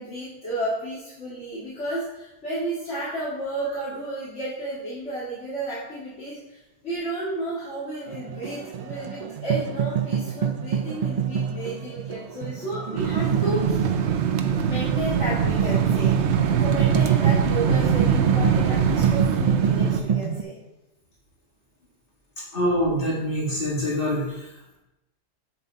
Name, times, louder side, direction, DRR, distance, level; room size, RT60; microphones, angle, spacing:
voice 1, 0.0-13.9 14.6-20.6, right 1 dB, 90° left, -11 dB, 2.7 m, -32 dB
sound 1, 8.1-20.4, right 8 dB, 55° right, 0.4 m, -27 dB
sound 2, 12.9-20.0, right 7 dB, 75° right, 1.0 m, -23 dB
voice 2, 22.5-24.5, equal, 50° left, -6 dB, 2.8 m, -25 dB
7.5 x 7.1 x 4.1 m, 0.92 s
omnidirectional pair, 1.2 m